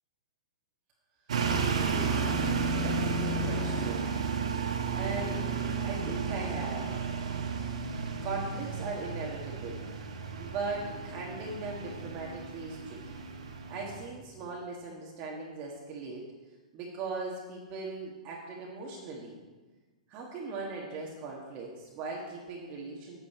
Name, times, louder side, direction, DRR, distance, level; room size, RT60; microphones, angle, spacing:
sound 1, 1.3-14.1, right 4 dB, 70° right, 1.4 m, -32 dB
voice 1, 1.7-4.1 4.9-7.0 8.0-9.8 10.4-13.2 13.7-16.2 16.7-19.4 20.1-23.2, right 3 dB, 35° right, -3 dB, 1.7 m, -39 dB
9.3 x 9.0 x 4.4 m, 1.3 s
hypercardioid pair, 120°, 4 cm